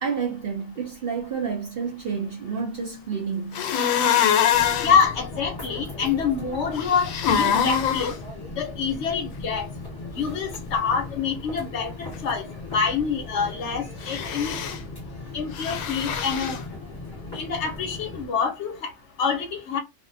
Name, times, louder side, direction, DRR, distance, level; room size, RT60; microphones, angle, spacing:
voice 1, 0.0-3.7 15.6-15.7, right 6 dB, 55° right, 0.6 m, -30 dB
sound 1, 3.5-5.0 6.7-8.1 14.0-14.8 15.5-16.6, left 8 dB, 85° left, 1.0 m, -24 dB
sound 2, 4.5-18.3, left 2 dB, 20° left, 1.3 m, -37 dB
voice 2, 4.8-8.1 8.6-9.7 10.2-12.5 12.7-14.6 15.3-16.6 17.3-18.9 19.2-19.8, left 6 dB, 60° left, 0.9 m, -26 dB
2.6 x 2.1 x 2.5 m
omnidirectional pair, 1.4 m